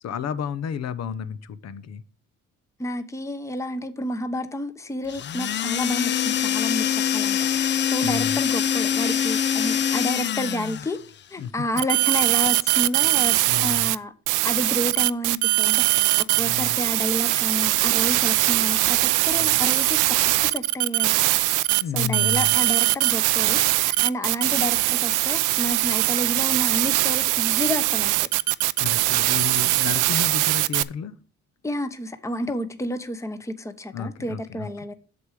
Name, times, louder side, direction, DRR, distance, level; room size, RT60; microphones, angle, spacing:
voice 1, 0.0-2.0 8.0-8.4 11.4-11.5 13.4-13.9 16.3-16.8 19.4-19.6 21.8-22.6 28.8-31.1 33.9-34.7, left 7 dB, 60° left, 0.8 m, -32 dB
voice 2, 2.8-11.0 11.3-13.4 13.6-14.1 14.4-21.5 21.9-28.3 31.6-34.9, left 1 dB, 10° left, 0.9 m, -30 dB
sound 1, 5.1-11.0, left 9 dB, 40° left, 0.4 m, -24 dB
sound 2, 11.8-13.9 14.3-30.8, right 18 dB, 85° right, 0.5 m, -21 dB
8.0 x 7.0 x 4.8 m
cardioid pair, 90°, 30 cm